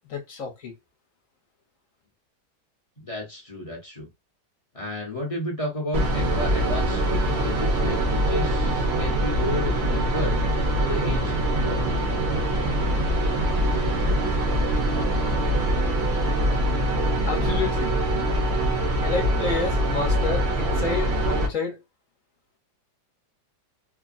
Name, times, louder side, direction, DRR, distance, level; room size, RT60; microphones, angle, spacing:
voice 1, 0.1-0.7 17.2-17.9 19.0-21.8, left 4 dB, 60° left, 1.1 m, -29 dB
voice 2, 3.0-4.1 4.7-10.4 10.6-11.9, left 1 dB, 30° left, 0.6 m, -32 dB
sound 1, 5.9-21.5, right 1 dB, 50° right, 0.8 m, -23 dB
3.4 x 2.1 x 2.5 m
omnidirectional pair, 1.8 m